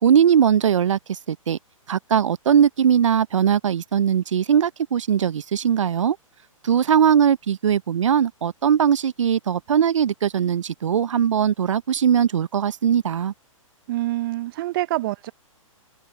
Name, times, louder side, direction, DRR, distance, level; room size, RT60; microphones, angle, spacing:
voice 1, 0.0-1.6 1.9-6.2 6.6-13.3, right 8 dB, 60° right, 1.1 m, -20 dB
voice 2, 13.9-15.3, right 16 dB, 40° right, 0.8 m, -26 dB
figure-of-eight pair, 120°, 18 cm